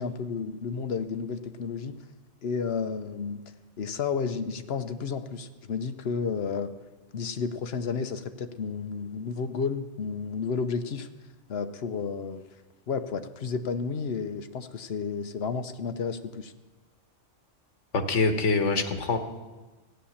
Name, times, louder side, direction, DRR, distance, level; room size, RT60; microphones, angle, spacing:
voice 1, 0.0-2.0 2.4-3.4 3.8-6.7 7.1-11.1 11.5-12.4 12.9-16.5, left 5 dB, 60° left, 10 dB, 1.0 m, -32 dB
voice 2, 17.9-19.2, left 3 dB, 85° left, 7 dB, 1.5 m, -24 dB
15.0 x 9.8 x 7.2 m, 1.2 s
omnidirectional pair, 1.2 m